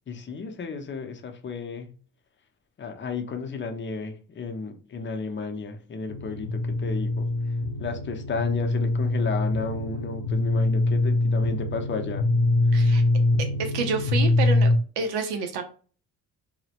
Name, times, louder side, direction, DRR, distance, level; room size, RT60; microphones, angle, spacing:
voice 1, 0.1-1.9 2.8-12.3 12.7-13.0, left 4 dB, 30° left, 0.6 m, -33 dB
sound 1, 6.1-14.8, left 2 dB, 75° left, 0.5 m, -24 dB
voice 2, 12.7-13.0 13.6-14.7 15.0-15.6, right 4 dB, 80° right, 0.6 m, -28 dB
2.1 x 2.0 x 2.8 m
supercardioid pair, 65°, 39 cm